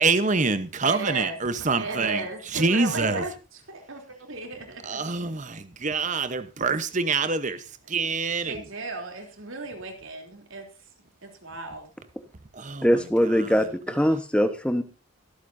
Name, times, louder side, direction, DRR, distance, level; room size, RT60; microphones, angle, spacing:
voice 1, 0.0-2.2 2.5-3.2 4.9-7.6 7.9-8.5 12.6-12.9, right 4 dB, 35° right, 1.0 m, -25 dB
voice 2, 0.8-1.4 1.7-5.0 7.8-7.9 8.4-10.7 11.2-11.9, right 3 dB, 65° right, 3.2 m, -35 dB
voice 3, 12.8-14.8, equal, 5° left, 1.1 m, -22 dB
23.5 x 8.4 x 2.7 m
head